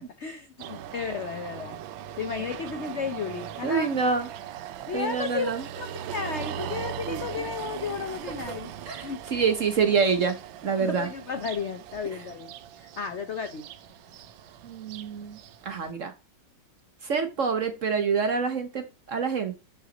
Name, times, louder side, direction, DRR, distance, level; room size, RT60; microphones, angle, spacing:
voice 1, 0.2-1.8 2.2-3.9 4.9-8.7 9.0-9.3 10.8-13.7, left 6 dB, 70° left, 10 dB, 0.6 m, -33 dB
sound 1, 0.6-15.9, right 10 dB, 75° right, 1.4 m, -40 dB
voice 2, 3.6-4.3 4.9-5.6 7.0-7.2 8.9-10.4 10.6-11.1 14.6-16.1 17.0-19.6, right 5 dB, 50° right, 8 dB, 1.0 m, -26 dB
12.0 x 5.8 x 4.1 m, 0.29 s
omnidirectional pair, 2.2 m